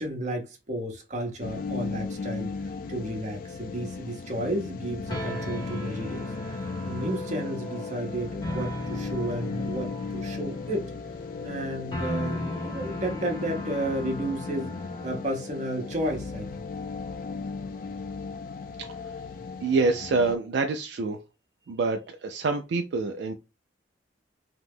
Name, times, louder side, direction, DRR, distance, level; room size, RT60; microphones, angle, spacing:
voice 1, 0.0-2.5 2.9-6.6 6.8-10.9 11.4-14.7 15.0-16.7, right 1 dB, 40° right, 0.8 m, -32 dB
sound 1, 1.4-20.4, left 4 dB, 50° left, 0.3 m, -36 dB
sound 2, 5.1-15.2, left 1 dB, 25° left, 0.9 m, -37 dB
voice 2, 18.8-19.1 19.6-21.2 21.7-23.3, right 3 dB, 65° right, 0.3 m, -27 dB
2.9 x 2.0 x 3.5 m
head